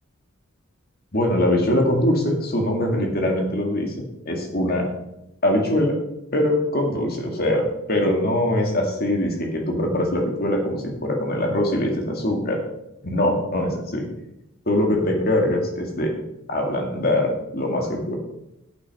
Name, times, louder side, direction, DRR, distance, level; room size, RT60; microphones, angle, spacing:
voice 1, 1.1-3.9 4.3-4.9 5.4-6.0 6.3-12.6 13.0-14.1 14.7-16.1 16.5-18.1, left 1 dB, 45° left, 1 dB, 2.3 m, -22 dB
9.3 x 8.5 x 5.5 m, 0.86 s
head